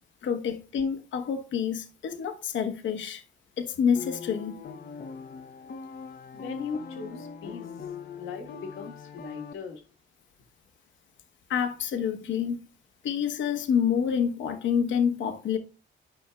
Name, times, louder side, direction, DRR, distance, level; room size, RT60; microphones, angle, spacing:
voice 1, 0.2-3.2 3.6-4.5 11.5-12.6 13.0-15.6, left 7 dB, 70° left, 1.1 m, -27 dB
sound 1, 3.9-9.5, left 6 dB, 50° left, 0.7 m, -41 dB
voice 2, 6.3-9.8, left 5 dB, 85° left, 1.6 m, -39 dB
9.8 x 5.5 x 2.3 m
cardioid pair, 90°, 20 cm